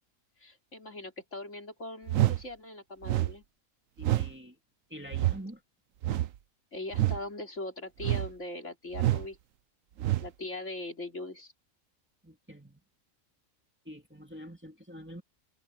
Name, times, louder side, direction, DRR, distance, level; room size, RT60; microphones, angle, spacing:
voice 1, 0.4-3.4 6.7-9.4 10.2-11.5, left 2 dB, 65° left, 3.9 m, -40 dB
sound 1, 2.1-2.4 3.0-3.3 4.0-4.3 5.1-5.4 6.0-6.4 6.9-7.2 8.0-8.3 8.9-9.3 10.0-10.3, right 14 dB, 75° right, 1.1 m, -27 dB
voice 2, 4.0-4.6 4.9-5.6 12.2-12.8 13.8-15.2, equal, 10° right, 2.6 m, -46 dB
omnidirectional pair, 1.4 m